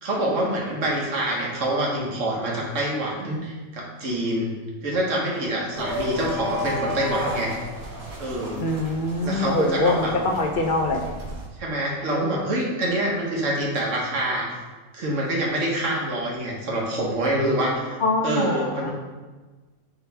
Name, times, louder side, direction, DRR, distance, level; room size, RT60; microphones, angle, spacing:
voice 1, 0.0-4.5 4.8-7.5 8.2-8.6 9.2-10.1 11.6-14.6 14.9-18.0 18.2-18.9, right 1 dB, 60° right, -3 dB, 1.6 m, -26 dB
sound 1, 5.7-11.5, equal, 80° right, 1.6 m, -33 dB
voice 2, 8.6-11.0 12.1-12.4 18.0-18.9, left 2 dB, 45° left, 1 dB, 0.7 m, -24 dB
8.9 x 3.2 x 3.4 m, 1.3 s
omnidirectional pair, 1.5 m